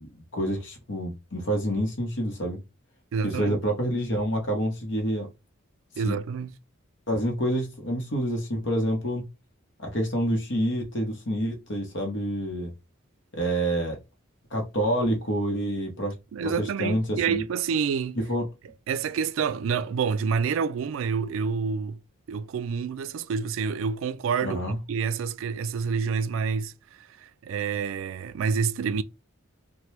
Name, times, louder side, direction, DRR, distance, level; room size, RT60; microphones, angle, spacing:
voice 1, 0.0-2.6 3.2-5.3 6.0-6.2 7.1-9.2 9.8-12.7 13.3-14.0 14.5-16.1 16.4-17.4 18.2-18.4 24.4-24.8, equal, 60° left, 0.8 m, -28 dB
voice 2, 3.1-3.6 6.0-6.5 16.3-18.2 18.9-22.0 22.3-26.7 27.0-29.0, right 6 dB, 70° right, 0.3 m, -28 dB
2.8 x 2.2 x 3.1 m
head